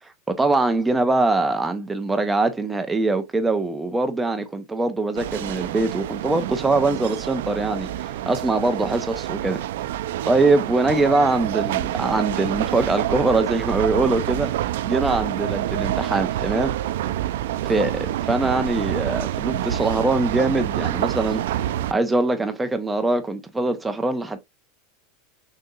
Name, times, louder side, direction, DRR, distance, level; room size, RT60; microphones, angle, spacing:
voice 1, 0.3-7.9 8.3-9.6 10.2-14.5 14.8-16.7 17.6-21.4 21.9-24.4, right 2 dB, 5° right, 0.6 m, -22 dB
sound 1, 5.1-21.9, right 13 dB, 75° right, 0.3 m, -27 dB
6.4 x 2.9 x 2.3 m
supercardioid pair, 180°, 0 cm